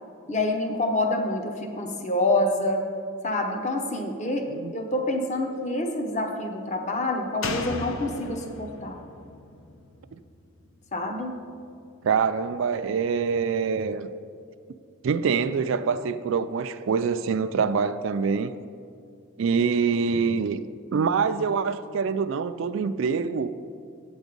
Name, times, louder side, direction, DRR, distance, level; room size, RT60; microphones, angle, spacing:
voice 1, 0.3-2.8 3.2-9.0 10.9-11.3, left 2 dB, 35° left, 0.8 m, -27 dB
Slam, 7.4-10.9 11.2-11.3, left 2 dB, 65° left, 0.7 m, -36 dB
voice 2, 12.0-14.1 15.0-18.5 19.4-20.6 20.9-23.5, right 5 dB, 65° right, 0.3 m, -25 dB
8.6 x 7.2 x 5.3 m
head